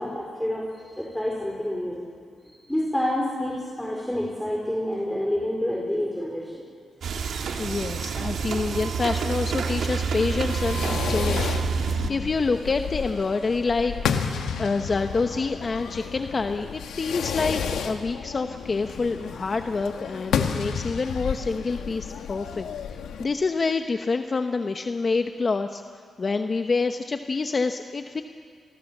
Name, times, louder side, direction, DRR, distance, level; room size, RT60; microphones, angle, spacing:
voice 1, 0.0-2.0 2.5-6.6, left 1 dB, 5° left, -2 dB, 4.1 m, -28 dB
sound 1, 7.0-12.1, right 5 dB, 70° right, 2.0 m, -28 dB
voice 2, 7.5-22.7 22.9-25.8 26.2-28.2, left 4 dB, 35° left, 7 dB, 0.9 m, -27 dB
Fireworks, 10.2-23.2, left 7 dB, 90° left, 1.7 m, -32 dB
28.5 x 21.5 x 7.4 m, 2.1 s
cardioid pair, 95°, 0 cm